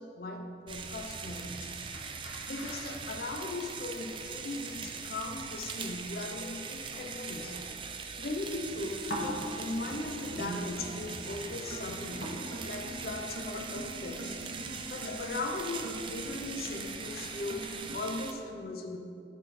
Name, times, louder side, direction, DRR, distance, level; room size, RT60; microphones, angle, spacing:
voice 1, 0.0-1.7 2.5-7.6 8.2-12.4 12.7-14.4 14.7-19.0, left 2 dB, 55° left, 4 dB, 0.6 m, -38 dB
sound 1, 0.7-18.3, right 5 dB, 30° right, 0.4 m, -41 dB
sound 2, 1.9-18.0, equal, 70° left, 1.5 m, -46 dB
sound 3, 10.3-18.0, right 1 dB, 85° right, 1.4 m, -43 dB
11.0 x 4.2 x 4.2 m, 2.6 s
head